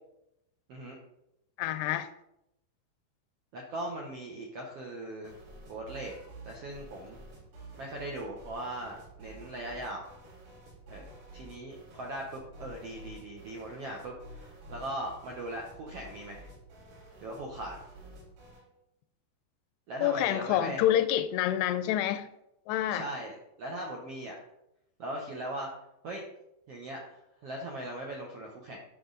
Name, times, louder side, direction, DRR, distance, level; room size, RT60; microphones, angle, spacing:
voice 1, 1.6-2.1 20.0-22.3 22.7-23.0, left 12 dB, 85° left, 12 dB, 2.7 m, -27 dB
voice 2, 3.5-5.3 5.7-6.1 6.4-7.2 7.8-10.0 10.9-11.0 11.3-16.5 17.2-17.8 19.9-20.9 22.9-24.3 25.0-25.7 26.0-26.2 26.7-28.8, right 1 dB, 85° right, -1 dB, 1.3 m, -39 dB
sound 1, 5.2-18.7, right 1 dB, 60° right, 5.7 m, -50 dB
11.0 x 6.1 x 4.1 m, 0.84 s
omnidirectional pair, 4.6 m